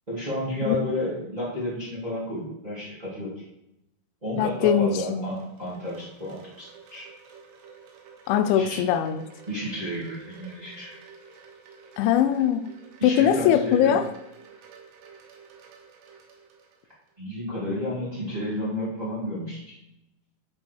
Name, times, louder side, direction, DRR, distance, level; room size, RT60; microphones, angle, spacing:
voice 1, 0.1-3.4 4.2-7.1 8.5-8.8 9.5-11.0 13.0-13.9 17.2-19.6, left 1 dB, 55° right, -8 dB, 0.4 m, -31 dB
voice 2, 4.4-5.3 8.3-9.2 12.0-12.7 13.0-14.1, left 9 dB, 80° left, 10 dB, 2.8 m, -21 dB
Wind chime, 4.9-17.1, right 6 dB, 85° right, 4.0 m, -51 dB
12.0 x 5.0 x 4.6 m, 0.85 s
omnidirectional pair, 5.8 m